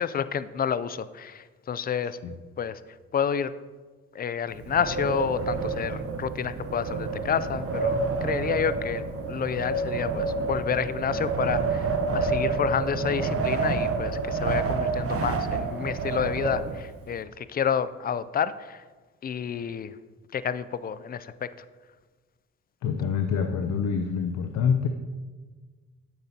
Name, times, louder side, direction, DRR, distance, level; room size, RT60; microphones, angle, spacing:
voice 1, 0.0-2.2 2.6-2.8 3.1-3.5 4.1-18.8 19.2-20.0 20.3-21.5, left 8 dB, 30° left, 15 dB, 0.4 m, -29 dB
Wind, 4.5-17.1, right 4 dB, 50° right, 0.8 m, -28 dB
voice 2, 22.8-24.9, left 6 dB, 70° left, 6 dB, 0.6 m, -26 dB
9.2 x 7.9 x 2.8 m, 1.4 s
cardioid pair, 90°, 30 cm